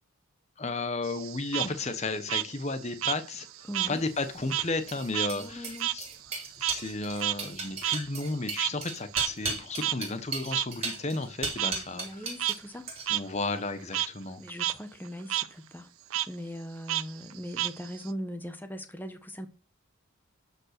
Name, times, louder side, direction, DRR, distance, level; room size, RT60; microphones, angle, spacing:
voice 1, 0.6-3.5 3.9-6.1 6.6-12.3 13.1-14.4, left 3 dB, 30° left, 1.0 m, -33 dB
Frog, 1.0-4.0 4.3-8.9 9.1-9.3 9.8-10.0 10.5-10.7 11.6-11.7 12.2-12.6 13.1-13.2 13.6-14.1 14.5-14.7 15.0-15.5 16.1-16.3 16.9-18.1, right 14 dB, 80° right, 0.7 m, -31 dB
voice 2, 3.7-4.0 5.3-5.9 11.6-12.9 14.4-15.9 16.3-19.5, equal, 10° left, 1.2 m, -40 dB
sound 1, 4.1-12.6 12.9-13.3, right 3 dB, 30° right, 3.8 m, -36 dB
13.0 x 5.4 x 6.6 m
head